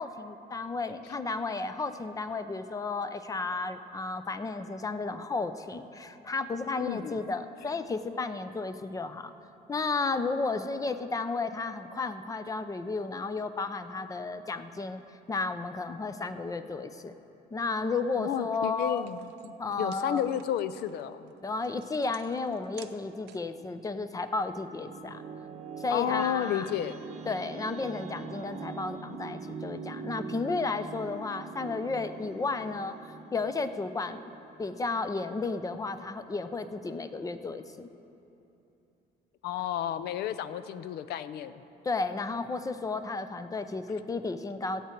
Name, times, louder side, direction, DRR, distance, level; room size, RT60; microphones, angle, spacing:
voice 1, 0.0-9.3 9.7-15.0 15.3-17.1 17.5-19.1 19.6-20.4 21.4-25.2 25.8-26.7 27.3-34.3 34.6-37.9 41.8-44.8, left 3 dB, 20° left, 11 dB, 0.6 m, -33 dB
voice 2, 6.8-7.2 18.2-21.3 25.9-27.0 39.4-41.6, left 10 dB, 75° left, 14 dB, 0.5 m, -32 dB
sound 1, 18.4-18.5 18.8-23.6, right 13 dB, 90° right, 0.6 m, -55 dB
sound 2, 24.2-35.3, right 5 dB, 45° right, 0.8 m, -43 dB
16.5 x 8.2 x 4.5 m, 3.0 s
cardioid pair, 110°, 17 cm